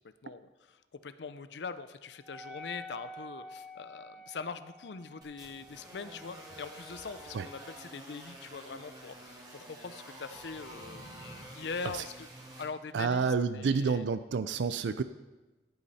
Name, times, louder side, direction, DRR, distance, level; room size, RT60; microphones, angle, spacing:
voice 1, 0.2-12.3 12.6-14.0, left 5 dB, 70° left, 12 dB, 0.6 m, -42 dB
Wind instrument woodwind instrument, 2.2-8.0, left 1 dB, ahead, 0.9 m, -50 dB
sound 1, 5.2-12.6, right 1 dB, 25° right, 2.4 m, -49 dB
sound 2, 6.5-7.8 10.0-12.0, equal, 45° right, 1.7 m, -55 dB
voice 2, 12.9-15.0, right 5 dB, 80° right, 12 dB, 0.4 m, -29 dB
15.0 x 8.5 x 4.2 m, 1.1 s
head